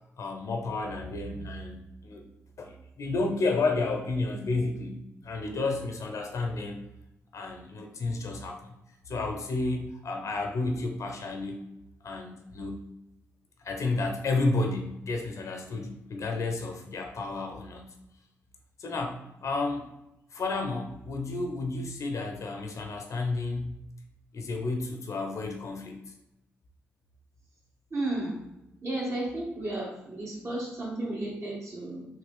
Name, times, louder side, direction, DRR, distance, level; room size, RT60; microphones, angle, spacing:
voice 1, 0.2-2.2 2.6-5.0 5.2-6.8 7.3-8.7 9.1-11.6 12.0-12.8 13.6-17.9 18.8-19.9 20.3-23.8 24.3-26.0, left 3 dB, 60° left, 3 dB, 0.7 m, -31 dB
voice 2, 27.9-28.4 28.8-32.0, right 2 dB, 50° right, -4 dB, 1.4 m, -33 dB
3.2 x 2.8 x 3.6 m, 0.88 s
hypercardioid pair, 40°, 6 cm